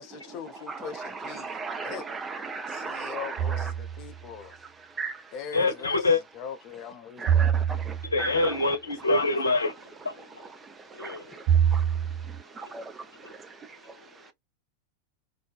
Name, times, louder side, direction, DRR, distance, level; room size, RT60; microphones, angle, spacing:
voice 1, 0.0-2.1 2.7-4.5 5.3-7.3, left 8 dB, 40° left, 0.6 m, -41 dB
voice 2, 0.7-3.7 4.6-5.3 7.2-8.6 10.6-14.0, right 4 dB, 15° right, 0.4 m, -38 dB
sound 1, 3.4-4.2 7.3-8.3 11.5-12.4, right 9 dB, 50° right, 1.1 m, -25 dB
voice 3, 5.5-6.2 8.0-9.7 10.0-10.5 10.9-11.4 13.2-13.3, left 3 dB, 75° left, 0.7 m, -26 dB
2.6 x 2.2 x 2.3 m
figure-of-eight pair, 90°, 0 cm